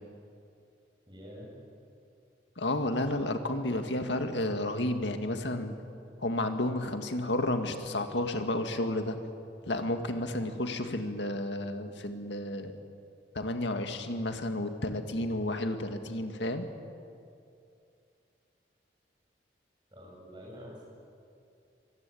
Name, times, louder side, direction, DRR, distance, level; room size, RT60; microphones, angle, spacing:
voice 1, 1.1-1.6 10.1-10.5 19.9-20.8, equal, 25° right, -3 dB, 7.8 m, -48 dB
voice 2, 2.6-5.7 6.2-9.2 9.7-12.7 13.3-16.7, left 1 dB, 80° left, 6 dB, 2.0 m, -31 dB
24.5 x 20.0 x 8.6 m, 2.5 s
head